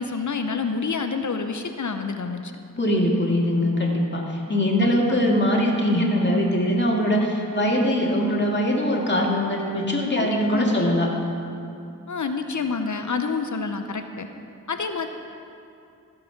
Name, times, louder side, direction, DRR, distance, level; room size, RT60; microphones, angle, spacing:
voice 1, 0.0-2.5 4.8-5.2 10.2-11.0 12.1-14.3 14.7-15.1, left 4 dB, 55° left, 7 dB, 0.8 m, -28 dB
voice 2, 2.8-11.1, equal, 30° left, -2 dB, 2.3 m, -22 dB
15.5 x 7.0 x 5.8 m, 2.6 s
cardioid pair, 50°, 35 cm